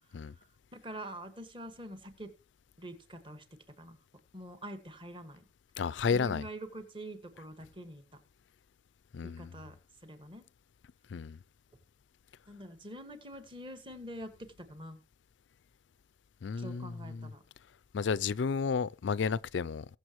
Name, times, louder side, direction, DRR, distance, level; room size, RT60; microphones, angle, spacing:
voice 1, 0.7-2.3 2.8-3.4 3.8-4.0 4.3-5.4 6.1-8.2 9.2-9.8 10.0-10.4 12.5-15.0 16.6-17.4, right 1 dB, 25° right, 1.7 m, -45 dB
voice 2, 5.8-6.4 9.1-9.5 11.1-11.4 16.4-17.3 17.9-19.9, left 5 dB, 85° left, 0.4 m, -32 dB
20.5 x 7.0 x 3.1 m
head